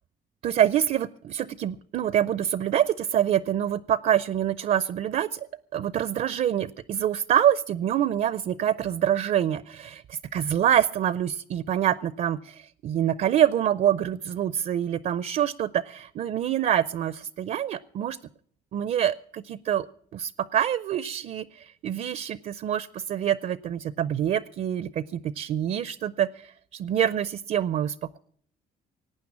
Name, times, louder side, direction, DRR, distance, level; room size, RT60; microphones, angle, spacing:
voice 1, 0.4-5.4 5.7-18.2 18.7-19.9 20.1-28.2, right 10 dB, 50° right, 17 dB, 0.5 m, -26 dB
18.0 x 9.3 x 7.2 m, 0.63 s
cardioid pair, 110°, 17 cm